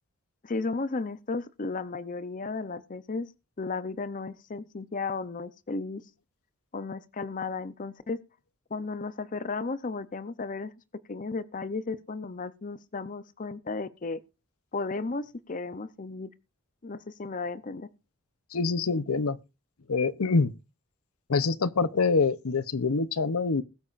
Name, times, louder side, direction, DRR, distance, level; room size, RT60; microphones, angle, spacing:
voice 1, 0.4-3.3 3.6-6.0 6.7-8.2 8.7-10.7 11.1-14.2 14.7-16.3 16.8-17.9, left 3 dB, 40° left, 0.6 m, -34 dB
voice 2, 18.5-19.4 19.9-20.5 21.3-23.6, left 4 dB, 85° left, 0.7 m, -25 dB
21.0 x 8.5 x 2.5 m
head